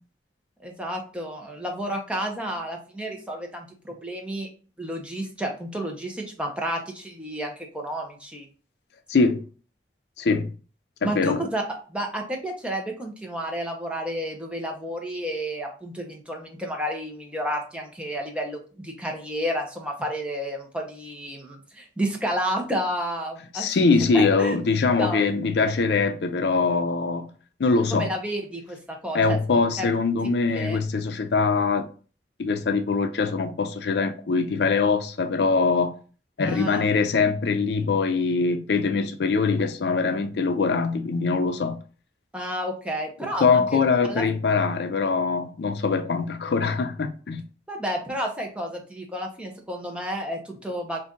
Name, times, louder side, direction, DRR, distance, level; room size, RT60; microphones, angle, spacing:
voice 1, 0.6-4.5 4.8-8.5 11.0-11.6 11.9-23.7 24.1-24.6 25.0-25.3 27.7-29.4 29.8-29.9 30.5-30.8 36.5-36.8 42.3-43.8 44.1-44.2 47.7-51.0, equal, 5° right, 0.7 m, -31 dB
voice 2, 9.1-9.4 10.2-10.5 11.0-11.4 23.5-27.3 27.6-28.1 29.1-31.8 32.4-35.9 36.4-41.8 43.4-47.4, left 4 dB, 75° left, 0.4 m, -23 dB
4.0 x 2.5 x 3.7 m
head